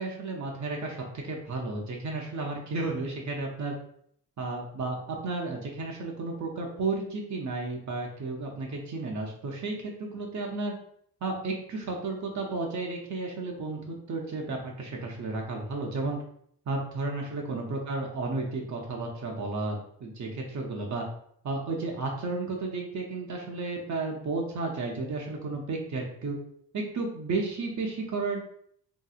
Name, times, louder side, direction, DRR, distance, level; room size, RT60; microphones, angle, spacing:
voice 1, 0.0-3.7 4.4-10.7 11.2-16.2 16.7-21.0 21.4-26.4 26.7-28.4, right 3 dB, 55° right, 0 dB, 0.6 m, -33 dB
3.1 x 2.8 x 2.4 m, 0.67 s
cardioid pair, 105°, 35 cm